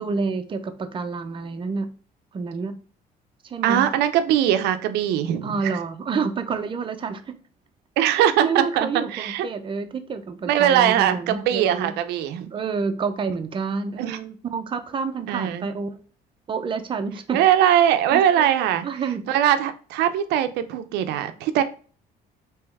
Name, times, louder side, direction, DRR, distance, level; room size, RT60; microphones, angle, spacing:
voice 1, 0.0-1.9 2.3-2.8 3.4-3.9 5.4-7.4 8.4-11.9 12.5-16.0 16.5-17.4 18.1-18.5 18.8-19.2, right 5 dB, 30° right, 8 dB, 0.5 m, -28 dB
voice 2, 3.6-5.7 8.0-9.5 10.5-12.5 14.0-14.2 15.3-15.7 17.3-18.8 19.3-21.6, right 10 dB, 85° right, 10 dB, 0.5 m, -21 dB
3.4 x 3.0 x 3.2 m, 0.41 s
cardioid pair, 110°, 17 cm